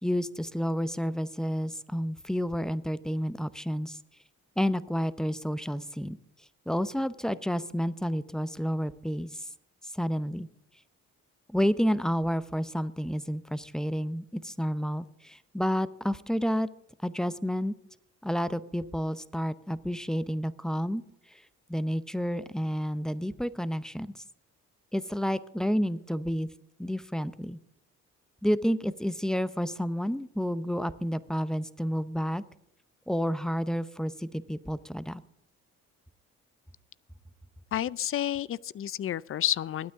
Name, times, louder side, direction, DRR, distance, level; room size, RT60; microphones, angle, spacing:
voice 1, 0.0-4.0 4.6-6.2 6.7-9.3 9.9-10.5 11.5-16.7 17.0-17.7 18.2-21.0 21.7-24.1 24.9-26.5 26.8-27.6 28.4-32.4 33.1-35.2, equal, ahead, 0.7 m, -30 dB
voice 2, 37.7-39.9, left 11 dB, 45° left, 0.5 m, -30 dB
21.5 x 9.4 x 3.6 m
cardioid pair, 90°, 30 cm